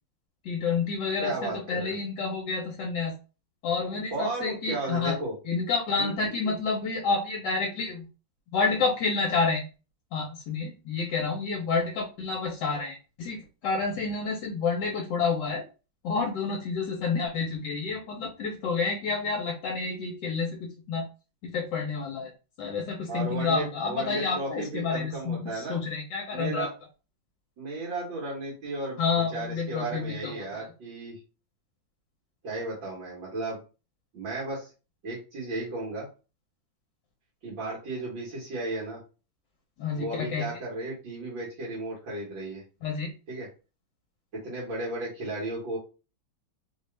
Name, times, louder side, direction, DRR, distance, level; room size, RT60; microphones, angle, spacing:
voice 1, 0.4-3.1 3.6-5.2 5.4-8.0 8.5-9.6 10.1-15.6 16.0-21.0 21.4-22.3 22.6-26.7 29.0-30.7 39.8-40.5 42.8-43.1, left 4 dB, 70° left, 0 dB, 1.3 m, -29 dB
voice 2, 1.2-1.9 4.1-5.3 6.0-6.5 23.1-25.8 26.3-26.7 27.6-31.2 32.4-33.6 34.1-34.7 35.0-36.1 37.4-39.0 40.0-42.6 43.3-43.5 44.4-45.8, right 2 dB, 80° right, -6 dB, 2.1 m, -34 dB
4.1 x 2.4 x 3.2 m, 0.33 s
omnidirectional pair, 2.1 m